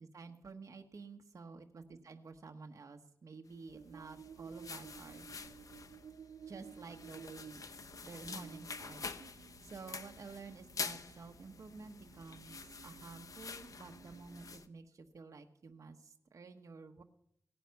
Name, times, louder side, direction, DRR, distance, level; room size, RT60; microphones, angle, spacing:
voice 1, 0.0-5.3 6.5-7.6 8.0-17.0, right 4 dB, 60° right, 4 dB, 1.2 m, -51 dB
sound 1, 3.7-14.6, right 7 dB, 85° right, 0.5 m, -55 dB
sound 2, 3.9-14.7, left 5 dB, 65° left, 0.8 m, -47 dB
17.5 x 10.0 x 5.8 m, 0.71 s
wide cardioid pair, 130°, 6 cm